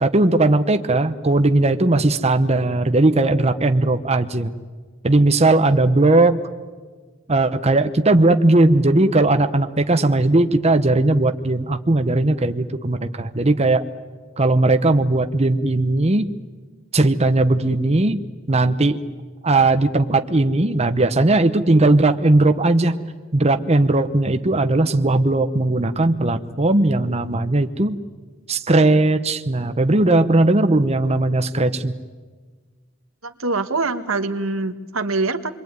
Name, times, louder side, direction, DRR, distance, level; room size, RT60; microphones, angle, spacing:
voice 1, 0.0-4.5 5.0-6.4 7.3-13.8 14.4-16.3 16.9-18.2 18.5-19.0 19.4-22.9 23.3-28.0 28.5-31.9, right 2 dB, 30° right, 8 dB, 1.0 m, -18 dB
voice 2, 33.2-35.5, right 3 dB, 85° right, 8 dB, 1.6 m, -24 dB
27.5 x 22.5 x 9.5 m, 1.4 s
head